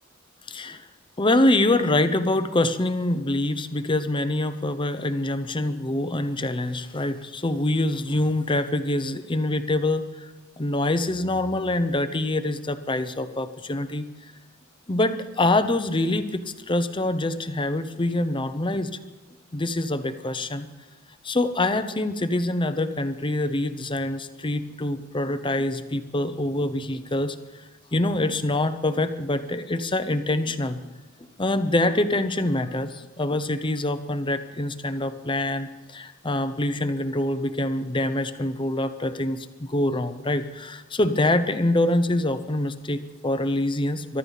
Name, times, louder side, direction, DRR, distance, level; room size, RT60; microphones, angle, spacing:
voice 1, 0.5-0.8 1.2-10.3 10.6-14.1 14.9-19.0 19.5-20.7 21.2-27.4 27.9-30.8 31.4-44.2, left 1 dB, 25° left, 10 dB, 0.8 m, -25 dB
23.5 x 12.0 x 4.1 m, 1.2 s
head